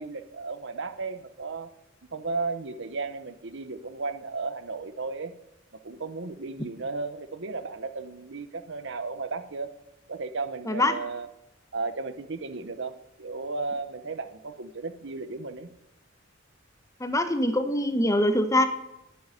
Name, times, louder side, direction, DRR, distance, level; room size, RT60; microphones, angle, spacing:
voice 1, 0.0-1.7 2.1-5.3 5.8-9.7 10.1-11.3 11.7-15.7, right 3 dB, 65° right, 12 dB, 0.9 m, -34 dB
voice 2, 10.6-11.0 17.0-18.7, left 1 dB, 15° left, 9 dB, 1.1 m, -23 dB
9.6 x 9.4 x 9.8 m, 0.86 s
head